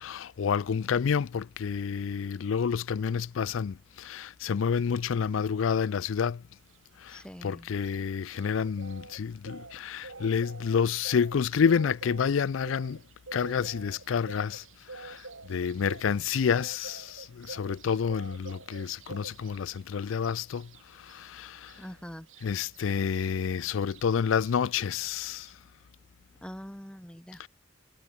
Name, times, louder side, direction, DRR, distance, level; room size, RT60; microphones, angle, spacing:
voice 1, 0.0-6.4 7.0-13.0 13.3-21.9 22.4-25.6 27.4-27.5, left 6 dB, 90° left, 0.4 m, -29 dB
sound 1, 6.7-25.5, right 3 dB, 90° right, 3.2 m, -48 dB
voice 2, 7.1-7.7 21.8-22.3 26.4-27.4, equal, 5° left, 1.5 m, -43 dB
head